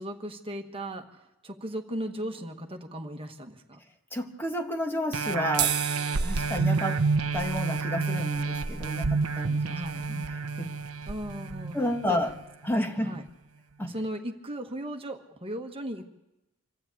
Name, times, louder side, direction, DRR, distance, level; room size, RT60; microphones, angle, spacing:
voice 1, 0.0-3.8 9.6-10.0 11.1-11.8 12.1-12.2 13.0-13.2 13.8-16.1, right 1 dB, 25° right, 4 dB, 1.5 m, -37 dB
voice 2, 4.1-5.8 6.2-7.0 7.3-9.8 10.1-10.2 10.6-10.7 11.7-12.4 12.6-13.2 13.8-13.9, left 1 dB, 10° left, 4 dB, 1.4 m, -31 dB
sound 1, 5.1-12.3 12.8-12.9, right 4 dB, 75° right, 0.9 m, -29 dB
sound 2, 5.5-12.1, right 10 dB, 50° right, 1.0 m, -37 dB
26.5 x 13.0 x 8.6 m, 0.97 s
head